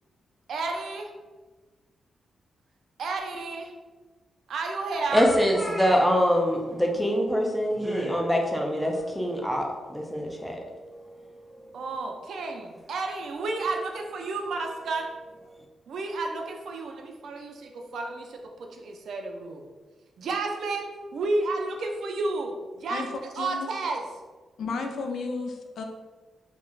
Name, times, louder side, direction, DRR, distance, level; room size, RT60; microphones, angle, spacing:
voice 1, 0.5-1.1 3.0-3.7 4.5-5.3 5.8-5.9 11.7-15.1 15.9-19.6 20.2-23.1 23.4-24.0, right 3 dB, 75° right, 2 dB, 0.4 m, -31 dB
voice 2, 4.9-11.0 11.7-11.8, equal, 5° left, 1 dB, 0.4 m, -25 dB
voice 3, 23.4-23.7 24.6-25.8, left 4 dB, 75° left, 3 dB, 0.3 m, -33 dB
3.1 x 2.1 x 2.3 m, 1.3 s
cardioid pair, 115°, 0 cm